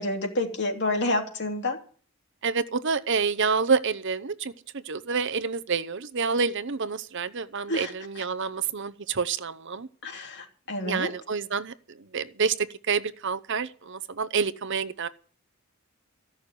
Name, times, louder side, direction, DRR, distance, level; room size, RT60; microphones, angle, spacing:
voice 1, 0.0-1.8 7.7-8.3 10.0-11.1, left 1 dB, 55° left, 3.2 m, -29 dB
voice 2, 2.4-9.9 10.8-11.7 12.1-12.5 12.9-15.1, right 5 dB, 55° right, 0.8 m, -28 dB
15.5 x 6.5 x 9.8 m
head